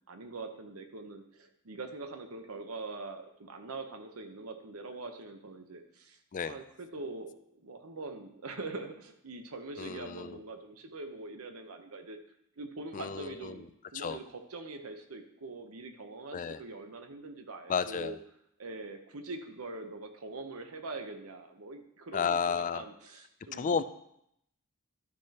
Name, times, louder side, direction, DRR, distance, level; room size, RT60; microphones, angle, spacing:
voice 1, 0.1-12.2 12.6-18.2 18.6-23.8, right 3 dB, 80° right, 6 dB, 0.9 m, -43 dB
voice 2, 9.8-10.4 12.9-13.6 13.9-14.2 16.3-16.6 17.7-18.2 22.1-22.8 23.5-23.8, left 6 dB, 35° left, 12 dB, 0.3 m, -32 dB
12.0 x 6.2 x 2.9 m, 0.76 s
head